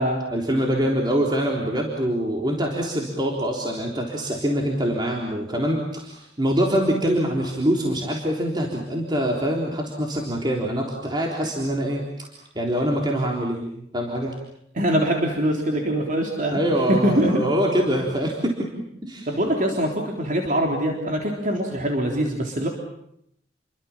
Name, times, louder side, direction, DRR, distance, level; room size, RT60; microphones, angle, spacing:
voice 1, 0.3-12.3 12.6-14.4 16.5-18.7 19.0-19.3, equal, 25° right, 0 dB, 3.7 m, -24 dB
voice 2, 14.8-16.6 16.9-17.4 19.3-22.7, equal, 50° right, 1 dB, 3.6 m, -23 dB
30.0 x 23.5 x 7.3 m, 0.75 s
head